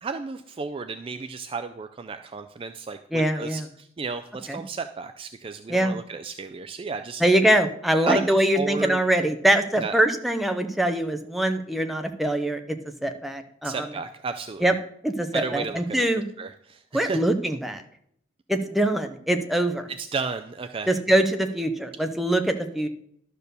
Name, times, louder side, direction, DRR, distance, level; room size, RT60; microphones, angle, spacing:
voice 1, 0.0-7.2 8.0-9.0 9.8-9.9 13.6-14.7 15.3-16.1 16.4-17.2 20.0-20.9, right 4 dB, 25° right, 7 dB, 0.3 m, -33 dB
voice 2, 3.1-3.6 4.5-4.6 5.7-6.0 7.2-12.8 13.0-13.9 14.6-14.7 15.0-16.2 16.9-17.8 18.5-19.9 20.9-22.9, right 1 dB, ahead, 5 dB, 0.7 m, -23 dB
11.5 x 4.5 x 6.8 m, 0.67 s
head